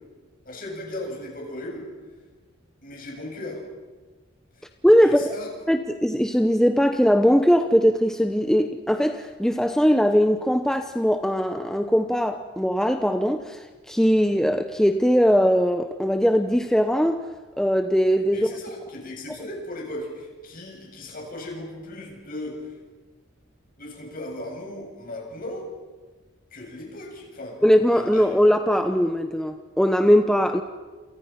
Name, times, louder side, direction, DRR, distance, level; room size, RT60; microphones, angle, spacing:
voice 1, 0.4-1.9 2.8-3.6 4.5-4.6 5.0-5.5 18.3-22.6 23.8-25.7 26.5-27.6 27.9-28.3, left 1 dB, 45° left, 0 dB, 8.0 m, -37 dB
voice 2, 4.8-5.3 5.7-17.2 17.6-18.5 27.6-30.6, equal, 5° left, 7 dB, 0.9 m, -20 dB
29.0 x 28.5 x 5.9 m, 1.3 s
head